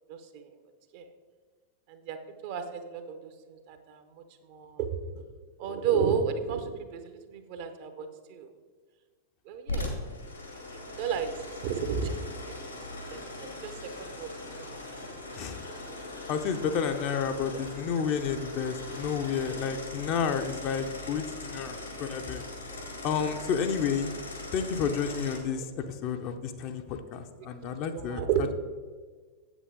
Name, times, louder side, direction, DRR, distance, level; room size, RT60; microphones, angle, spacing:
voice 1, 0.1-0.5 0.9-1.0 1.9-2.2 2.4-4.9 5.1-5.2 5.6-8.5 9.5-9.9 11.0-11.3 11.6-12.2 13.1-14.3 14.5-15.0 15.8-16.0 17.5-17.6 27.4-27.5 27.9-28.5, right 7 dB, 50° right, 8 dB, 0.9 m, -33 dB
sound 1, 9.7-25.4, left 2 dB, 80° left, 1.9 m, -40 dB
voice 2, 16.3-22.4 23.0-24.1 24.5-28.2, left 7 dB, 40° left, 6 dB, 0.7 m, -31 dB
8.1 x 8.0 x 3.8 m, 1.5 s
figure-of-eight pair, 90°, 0 cm